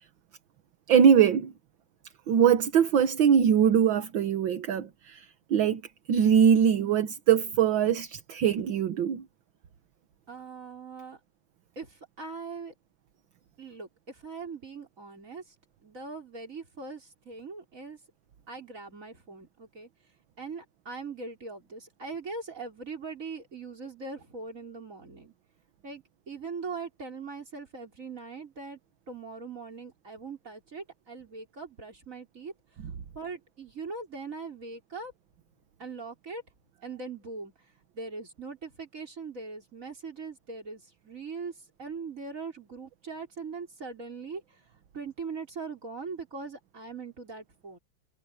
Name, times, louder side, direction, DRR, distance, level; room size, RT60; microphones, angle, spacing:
voice 1, 0.9-1.5 2.3-5.8 6.1-9.2, right 8 dB, 65° right, 1.8 m, -22 dB
voice 2, 10.3-11.2 11.8-12.7 13.6-15.5 15.8-18.0 18.5-19.9 20.4-25.3 25.8-28.8 29.1-32.5 33.1-35.1 35.8-36.4 36.8-37.5 37.9-44.7 44.9-47.8, right 4 dB, 35° right, 4.9 m, -41 dB
omnidirectional pair, 2.3 m